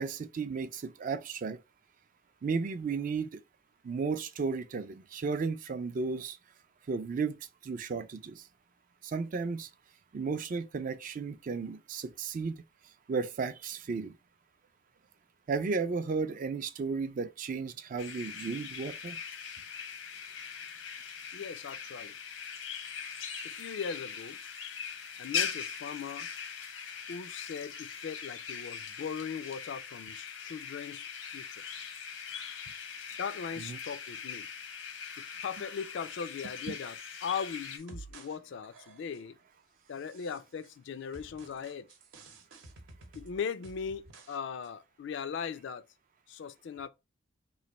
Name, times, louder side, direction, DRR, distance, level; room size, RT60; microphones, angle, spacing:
voice 1, 0.0-1.6 2.4-3.4 3.8-6.4 6.9-8.5 9.0-9.7 10.1-12.6 13.1-14.1 15.5-19.2 33.6-33.8 36.7-36.8, right 4 dB, 45° right, 0.4 m, -34 dB
sound 1, 18.0-37.8, left 7 dB, 85° left, 0.9 m, -41 dB
voice 2, 21.3-22.1 23.4-24.4 25.2-26.3 27.1-31.6 33.2-34.5 35.2-39.4 39.9-41.9 43.1-45.8 46.3-46.9, left 6 dB, 60° left, 0.3 m, -39 dB
sound 2, 37.1-38.4 38.6-39.3 39.9-40.8 41.1-44.4 44.6-44.7, right 3 dB, 75° right, 0.8 m, -52 dB
3.1 x 2.5 x 4.0 m
head